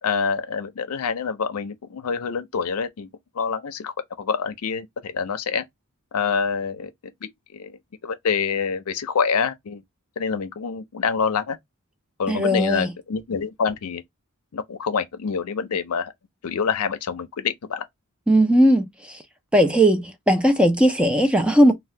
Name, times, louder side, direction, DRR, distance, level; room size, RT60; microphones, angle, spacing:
voice 1, 0.0-3.1 3.3-5.6 6.1-6.9 7.2-7.8 8.0-9.8 10.2-11.6 12.2-14.0 14.5-16.1 16.4-17.8, left 6 dB, 80° left, 0.5 m, -26 dB
voice 2, 12.3-12.9 18.3-18.9 19.5-21.7, equal, 5° right, 0.3 m, -17 dB
2.7 x 2.2 x 3.2 m
head